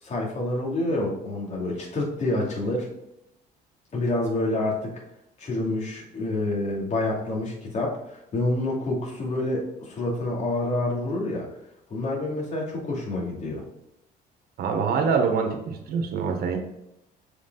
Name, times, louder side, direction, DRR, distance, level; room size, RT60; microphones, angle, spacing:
voice 1, 0.0-2.9 3.9-5.0 5.4-11.5 11.9-13.6, left 2 dB, 45° left, -3 dB, 2.7 m, -28 dB
voice 2, 14.6-16.6, right 5 dB, 65° right, 4 dB, 1.5 m, -25 dB
6.8 x 5.0 x 4.0 m, 0.87 s
cardioid pair, 110°, 17 cm